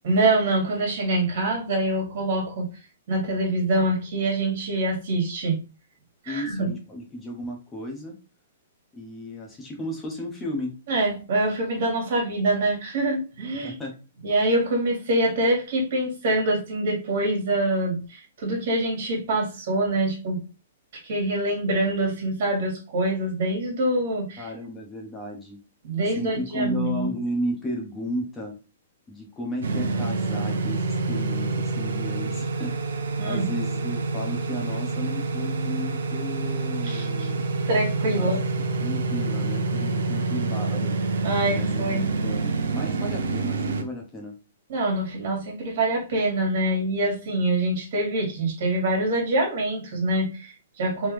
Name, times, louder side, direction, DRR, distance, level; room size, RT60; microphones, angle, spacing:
voice 1, 0.0-2.7 3.1-5.6 6.2-6.7 10.9-13.8 14.2-20.4 21.0-24.5 25.8-27.1 33.2-33.4 36.8-37.3 37.7-38.4 41.2-42.0 44.7-51.1, right 1 dB, 45° right, -1 dB, 1.9 m, -25 dB
voice 2, 6.3-8.1 8.9-10.7 13.6-14.0 24.4-25.6 26.1-28.5 29.1-32.7 33.2-37.4 38.2-38.3 38.8-40.9 41.5-44.3, equal, 10° left, 0 dB, 0.8 m, -34 dB
sound 1, 29.6-43.8, right 3 dB, 90° right, 0.7 m, -27 dB
3.3 x 2.9 x 3.2 m, 0.31 s
hypercardioid pair, 175°, 0 cm